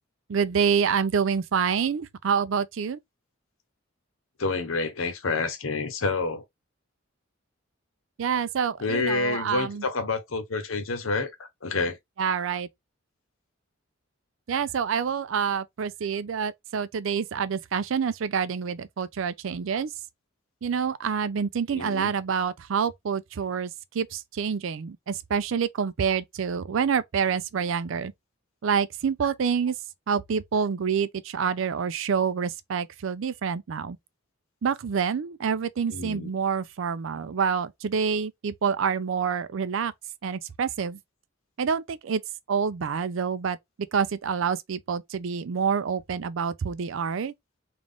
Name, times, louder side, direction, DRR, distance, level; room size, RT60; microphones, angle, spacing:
voice 1, 0.3-3.0 8.2-9.8 12.2-12.7 14.5-19.9 20.6-28.1 28.6-29.7 30.1-34.0 34.6-39.9 40.2-41.0 41.6-42.2 42.5-43.6 43.9-47.3, right 6 dB, 65° right, 0.4 m, -27 dB
voice 2, 4.4-6.4 8.8-12.0 21.7-22.1 35.9-36.3, left 3 dB, 75° left, 0.9 m, -28 dB
3.7 x 2.4 x 3.4 m
head